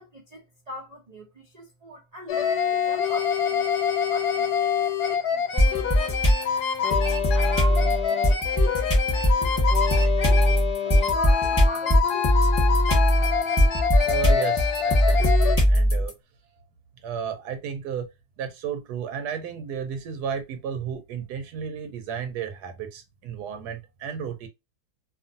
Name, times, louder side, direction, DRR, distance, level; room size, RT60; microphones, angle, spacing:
voice 1, 0.0-6.2 6.8-12.3, right 1 dB, 65° right, 0.4 m, -42 dB
sound 1, 2.3-15.6, left 7 dB, 80° left, 1.3 m, -26 dB
sound 2, 5.6-6.4 6.9-16.1, equal, 10° left, 0.9 m, -20 dB
voice 2, 14.0-16.1 17.0-18.1 18.4-24.5, right 7 dB, 85° right, 1.1 m, -33 dB
2.7 x 2.5 x 2.5 m
omnidirectional pair, 1.7 m